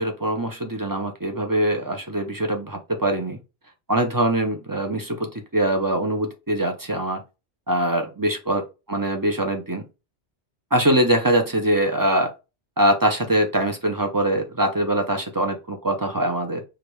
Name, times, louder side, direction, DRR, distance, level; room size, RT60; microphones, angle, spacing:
voice 1, 0.0-3.4 3.9-7.2 7.7-9.8 10.7-12.3 12.8-16.6, right 1 dB, 25° right, 3 dB, 0.6 m, -23 dB
5.0 x 2.5 x 3.1 m, 0.27 s
omnidirectional pair, 1.2 m